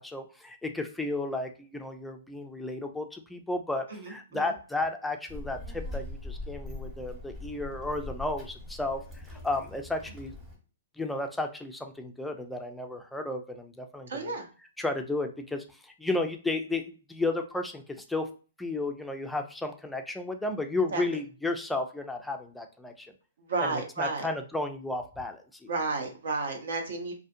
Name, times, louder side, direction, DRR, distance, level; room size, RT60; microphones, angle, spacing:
voice 1, 0.0-10.4 11.0-14.3 14.8-18.3 18.6-23.1 23.6-25.7, left 2 dB, 5° left, 5 dB, 0.3 m, -33 dB
voice 2, 3.9-4.5 14.1-14.5 20.9-21.0 23.5-24.3 25.7-27.2, right 3 dB, 70° right, 4 dB, 0.8 m, -32 dB
Child speech kid speaking, 5.3-10.6, left 2 dB, 15° right, 1.0 m, -41 dB
2.4 x 2.3 x 2.6 m, 0.36 s
hypercardioid pair, 135°, 0 cm